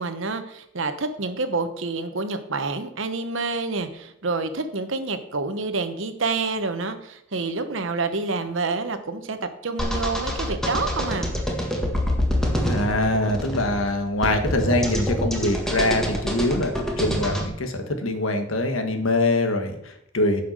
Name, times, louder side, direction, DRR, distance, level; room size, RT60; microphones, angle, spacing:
voice 1, 0.0-11.3, right 3 dB, 65° right, 9 dB, 1.0 m, -28 dB
sound 1, 9.8-17.5, equal, 5° left, 1.7 m, -26 dB
voice 2, 12.7-20.4, left 2 dB, 85° left, 6 dB, 1.5 m, -24 dB
10.0 x 5.6 x 6.6 m, 0.78 s
head